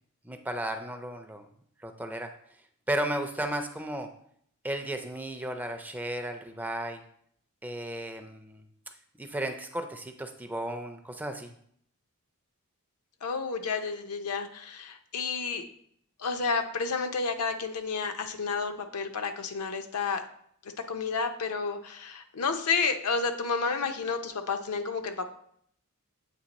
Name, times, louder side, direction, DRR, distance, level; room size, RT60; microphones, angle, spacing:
voice 1, 0.2-1.5 1.8-2.3 2.9-4.1 4.6-7.0 7.6-8.7 9.2-11.5, right 1 dB, 10° right, 6 dB, 0.4 m, -34 dB
voice 2, 13.2-15.6 16.2-20.2 20.9-25.3, left 4 dB, 85° left, 6 dB, 0.6 m, -31 dB
8.3 x 2.9 x 4.0 m, 0.66 s
head